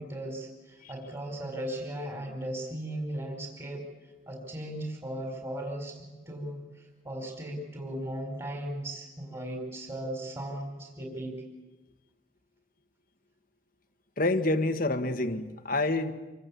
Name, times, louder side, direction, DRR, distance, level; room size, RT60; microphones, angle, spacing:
voice 1, 0.0-3.8 4.3-11.4, right 1 dB, 20° right, 1 dB, 4.3 m, -37 dB
voice 2, 14.2-16.1, left 2 dB, 50° left, 8 dB, 1.8 m, -27 dB
27.0 x 24.5 x 8.5 m, 1.2 s
head